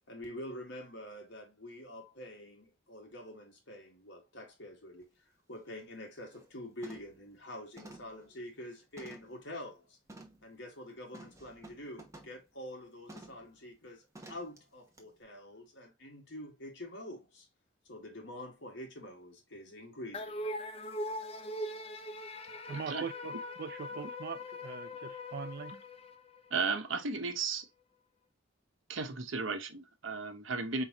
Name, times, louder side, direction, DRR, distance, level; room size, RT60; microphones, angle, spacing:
voice 1, 0.1-5.1 5.5-10.0 10.4-17.5 17.9-20.5, left 1 dB, 65° left, 1.8 m, -46 dB
sound 1, 5.0-5.1 5.6-5.8 6.2-6.5 6.8-7.2 7.8-9.4 10.1-10.4 11.1-12.4 13.1-13.5 14.1-14.6 15.0-15.1, right 2 dB, 15° right, 0.9 m, -52 dB
sound 2, 20.1-26.7, left 1 dB, 30° left, 0.6 m, -41 dB
voice 2, 22.7-25.7, right 6 dB, 50° right, 0.3 m, -42 dB
voice 3, 26.5-27.7 28.9-30.8, right 4 dB, 80° right, 0.9 m, -34 dB
4.7 x 3.8 x 2.9 m
head